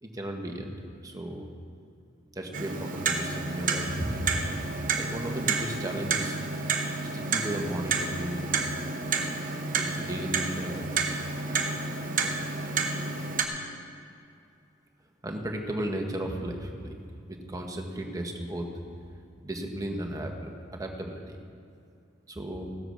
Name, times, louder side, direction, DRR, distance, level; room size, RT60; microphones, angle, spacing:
voice 1, 0.0-0.7 1.0-1.5 2.3-4.1 5.0-6.4 7.1-8.6 9.8-10.9 15.2-16.9 17.3-18.9 19.4-21.4 22.3-22.7, right 1 dB, 20° right, 2 dB, 1.3 m, -35 dB
Clock, 2.5-13.5, right 4 dB, 45° right, 1.1 m, -30 dB
16.0 x 7.9 x 6.3 m, 2.4 s
head